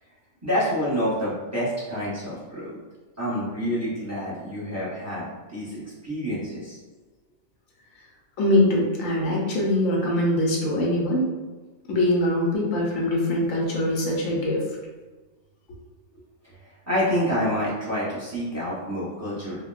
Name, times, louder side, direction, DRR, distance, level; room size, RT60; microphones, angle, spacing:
voice 1, 0.4-2.8 3.2-6.8 16.9-19.6, equal, 15° right, -10 dB, 0.9 m, -28 dB
voice 2, 8.4-11.3 11.9-14.6, left 1 dB, 75° left, -3 dB, 1.2 m, -23 dB
3.7 x 2.2 x 2.4 m, 1.3 s
omnidirectional pair, 1.4 m